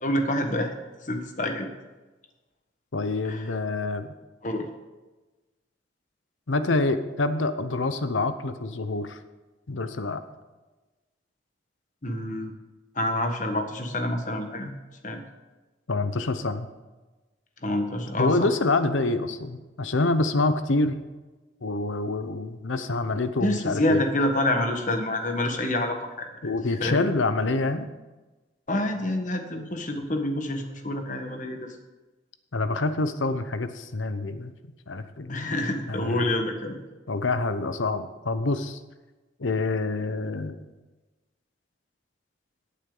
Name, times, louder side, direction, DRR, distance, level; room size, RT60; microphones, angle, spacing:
voice 1, 0.0-0.7 1.0-1.7 3.3-3.4 4.4-4.7 12.0-12.5 13.0-14.7 15.0-15.2 17.6-18.4 23.4-26.3 26.8-27.0 28.7-31.7 35.3-36.8, left 1 dB, 40° left, 5 dB, 1.4 m, -27 dB
voice 2, 2.9-4.1 6.5-9.2 9.7-10.2 15.9-16.7 18.2-21.0 21.6-24.0 26.4-27.9 32.5-34.5 34.9-35.5 35.9-36.4 37.1-38.8 39.4-40.6, left 2 dB, 90° left, 10 dB, 0.8 m, -26 dB
16.5 x 8.5 x 3.9 m, 1.2 s
head